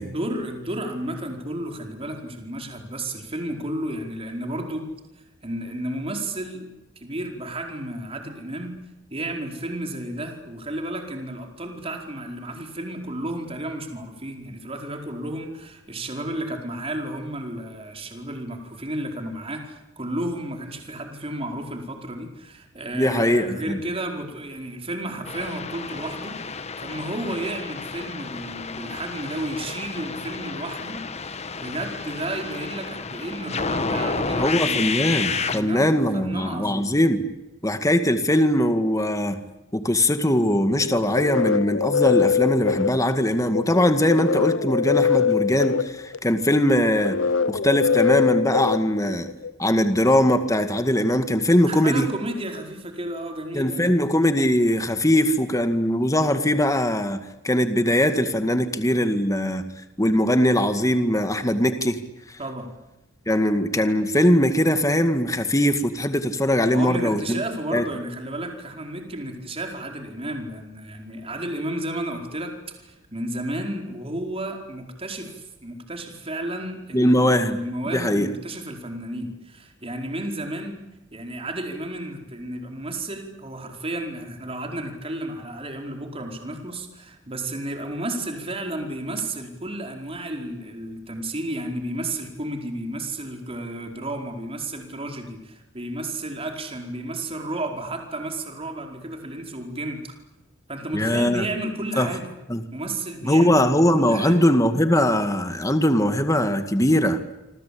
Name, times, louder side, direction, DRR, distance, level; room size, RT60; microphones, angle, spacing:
voice 1, 0.0-4.9 5.4-6.7 7.0-8.7 9.1-35.0 35.5-36.9 51.6-54.0 62.4-62.7 66.7-80.8 81.1-100.1 100.7-102.3 102.7-104.4, right 1 dB, 30° right, 3 dB, 4.8 m, -32 dB
voice 2, 22.9-23.8 34.4-37.3 37.6-39.4 39.7-47.2 47.5-49.3 49.6-52.1 53.5-59.6 60.0-62.0 63.3-67.4 67.7-67.8 76.9-77.6 77.9-78.3 100.9-101.5 102.0-102.1 102.5-102.6 103.2-107.2, left 1 dB, 15° left, 8 dB, 2.0 m, -21 dB
sound 1, 25.2-35.6, left 4 dB, 35° left, 1.5 m, -30 dB
sound 2, 40.8-49.5, left 6 dB, 80° left, 1.0 m, -23 dB
28.0 x 25.0 x 8.6 m, 1.0 s
head